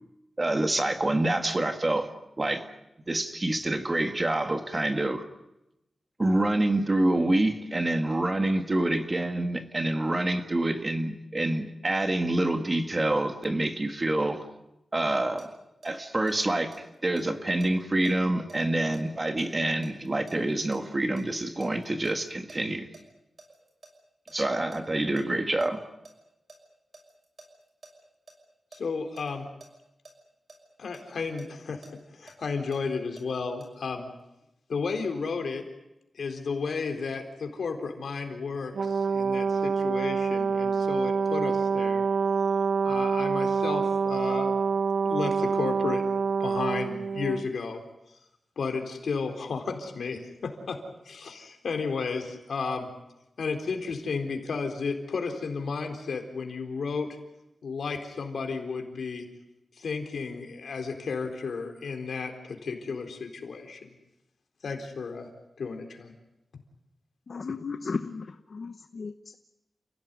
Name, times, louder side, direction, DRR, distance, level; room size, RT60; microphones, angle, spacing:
voice 1, 0.4-2.1 2.4-2.6 3.1-5.3 6.2-14.5 14.9-15.5 15.8-16.7 17.0-22.9 24.3-25.8, right 1 dB, 20° right, 1.7 m, -27 dB
sound 1, 15.4-21.2 21.6-23.9 24.3-24.4 24.7-25.2 25.6-28.8 29.2-29.3 29.6-29.7 30.0-30.1 30.5-33.2 33.6-33.7, right 3 dB, 40° right, 6.1 m, -50 dB
voice 2, 28.7-29.5 30.8-34.1 34.7-35.7 36.1-42.1 42.8-44.6 44.9-46.0 46.4-47.8 48.6-50.8 51.0-52.9 53.4-57.2 57.6-59.3 59.8-63.9 64.6-65.3 65.6-66.1, left 4 dB, 75° left, 4.1 m, -33 dB
Brass instrument, 38.7-47.5, right 5 dB, 80° right, 0.8 m, -26 dB
voice 3, 67.3-69.4, left 4 dB, 50° left, 0.9 m, -35 dB
30.0 x 16.5 x 9.5 m
wide cardioid pair, 175°, 0 cm